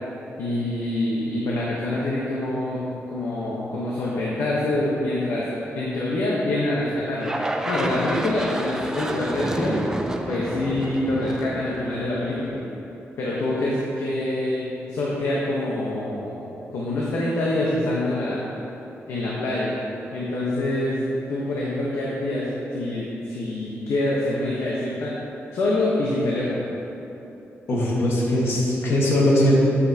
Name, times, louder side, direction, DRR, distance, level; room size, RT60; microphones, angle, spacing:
voice 1, 0.4-5.4 5.7-9.8 10.3-12.6 13.2-18.5 19.1-19.7 20.1-25.1 25.5-26.6, left 1 dB, 80° left, -6 dB, 1.1 m, -26 dB
sound 1, 7.2-12.5, right 1 dB, 10° right, 0.4 m, -30 dB
voice 2, 27.7-29.5, left 1 dB, 60° left, -4 dB, 1.5 m, -20 dB
8.4 x 8.1 x 2.9 m, 2.9 s
wide cardioid pair, 145°, 5 cm